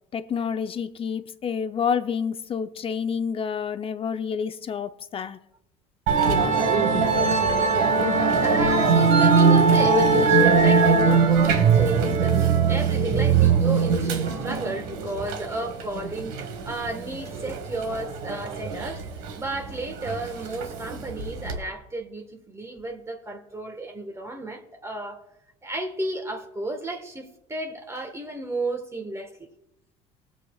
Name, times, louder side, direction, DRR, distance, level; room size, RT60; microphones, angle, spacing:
voice 1, 0.1-5.4, left 6 dB, 35° left, 0.7 m, -28 dB
Musical instrument, 6.1-21.6, right 5 dB, 80° right, 1.6 m, -21 dB
voice 2, 8.2-19.0 19.4-25.2 25.6-29.3, right 2 dB, 15° right, 1.5 m, -33 dB
20.0 x 7.8 x 2.4 m
supercardioid pair, 90°, 16 cm